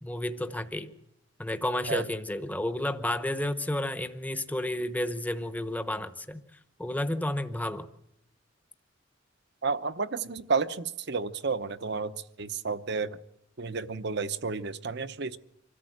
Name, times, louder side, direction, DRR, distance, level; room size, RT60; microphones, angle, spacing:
voice 1, 0.0-0.9 1.4-6.4 6.8-7.9, left 1 dB, 10° left, 10 dB, 0.9 m, -31 dB
voice 2, 9.6-12.1 12.4-13.2 13.6-15.4, right 4 dB, 60° right, 12 dB, 0.9 m, -31 dB
25.5 x 13.5 x 7.9 m, 0.82 s
head